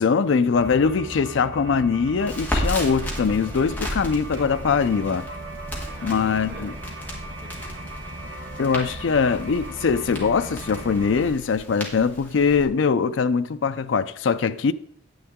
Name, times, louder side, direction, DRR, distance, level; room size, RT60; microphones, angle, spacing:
voice 1, 0.0-5.3 6.0-6.7 8.6-14.7, left 5 dB, 85° left, 0.4 m, -22 dB
sound 1, 0.5-11.3, right 1 dB, 75° right, 2.1 m, -37 dB
Crackle, 2.2-12.6, equal, 10° left, 1.7 m, -34 dB
voice 2, 5.5-8.2, right 2 dB, 15° right, 3.8 m, -48 dB
9.5 x 9.5 x 3.6 m
head